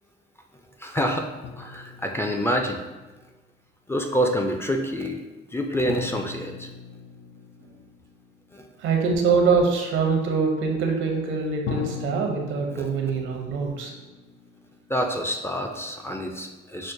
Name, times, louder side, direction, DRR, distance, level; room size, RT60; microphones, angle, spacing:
voice 1, 0.8-1.3 1.6-2.8 3.9-5.2 5.5-6.7 8.5-8.7 14.9-16.9, equal, 10° left, 2 dB, 0.4 m, -27 dB
sound 1, 1.4-3.2 5.9-8.7 11.7-15.5, left 6 dB, 65° left, 0.5 m, -40 dB
voice 2, 8.8-13.9, right 5 dB, 80° right, 2 dB, 0.7 m, -24 dB
6.1 x 2.1 x 2.6 m, 1.2 s
cardioid pair, 90°, 20 cm